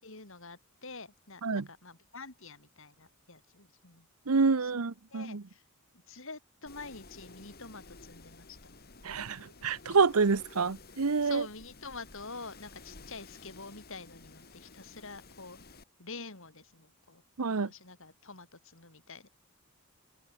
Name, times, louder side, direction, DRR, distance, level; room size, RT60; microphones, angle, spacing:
voice 1, 0.0-4.1 4.6-4.7 5.1-5.6 5.9-8.7 11.2-15.6 16.0-17.2 17.5-19.3, left 3 dB, 60° left, 5.4 m, -47 dB
voice 2, 4.3-5.4 9.0-11.4 17.4-17.7, right 4 dB, 75° right, 0.8 m, -27 dB
Wind, 6.7-15.8, left 3 dB, 45° left, 3.3 m, -53 dB
open air
head